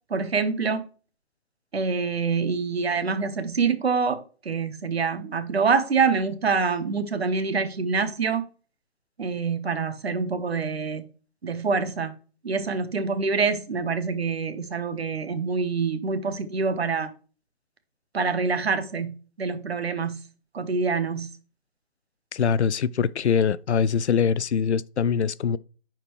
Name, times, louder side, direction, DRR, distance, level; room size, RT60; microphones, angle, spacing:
voice 1, 0.1-0.8 1.7-8.4 9.2-11.0 11.4-12.1 12.4-17.1 18.1-20.2 20.5-21.3, right 5 dB, 70° right, 1.2 m, -26 dB
voice 2, 22.3-25.6, left 7 dB, 85° left, 0.5 m, -23 dB
10.5 x 4.4 x 3.1 m
figure-of-eight pair, 150°, 33 cm